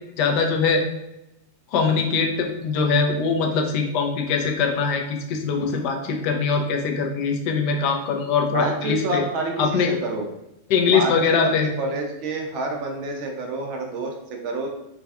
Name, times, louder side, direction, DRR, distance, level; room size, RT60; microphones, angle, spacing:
voice 1, 0.2-0.8 1.7-9.2 9.6-9.9 10.7-11.7, left 5 dB, 45° left, 3 dB, 0.4 m, -22 dB
voice 2, 8.5-10.3 10.9-14.7, right 2 dB, 40° right, 2 dB, 0.5 m, -28 dB
2.4 x 2.3 x 2.4 m, 0.88 s
figure-of-eight pair, 90°, 0 cm